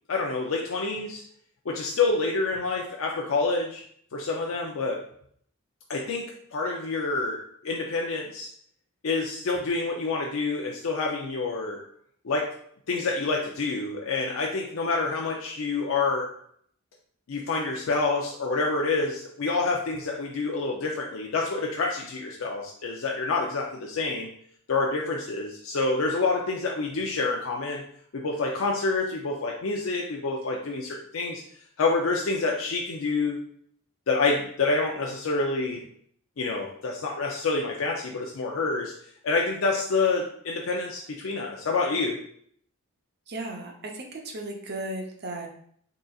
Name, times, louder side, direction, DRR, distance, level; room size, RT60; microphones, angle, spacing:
voice 1, 0.1-1.2 1.7-3.8 4.1-5.0 5.9-8.5 9.0-11.8 12.2-12.6 12.9-16.3 17.3-24.3 24.7-27.8 28.1-31.4 31.8-33.4 34.1-35.9 36.4-38.9 39.2-42.2, left 3 dB, 70° left, 0 dB, 0.5 m, -27 dB
voice 2, 43.3-45.5, right 2 dB, 50° right, 2 dB, 0.7 m, -35 dB
3.8 x 3.8 x 2.3 m, 0.63 s
head